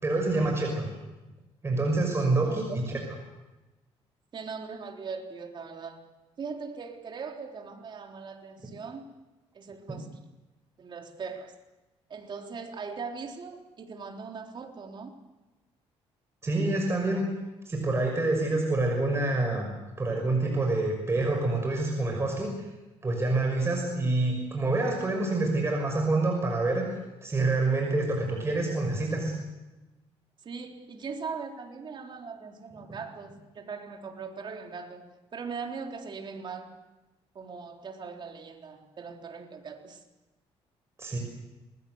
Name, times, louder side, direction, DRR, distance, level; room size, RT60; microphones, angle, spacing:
voice 1, 0.0-0.9 1.6-3.0 9.9-10.0 16.4-17.2 17.7-19.7 20.0-22.7 23.0-26.8 27.2-29.3 41.0-41.2, right 2 dB, 25° right, 1 dB, 6.1 m, -27 dB
voice 2, 2.5-3.0 4.3-6.1 6.4-9.1 9.5-10.3 10.8-11.5 12.1-15.1 30.4-36.8 37.3-40.0, right 5 dB, 45° right, 2 dB, 3.9 m, -40 dB
27.5 x 21.0 x 8.1 m, 1.1 s
cardioid pair, 110°, 11 cm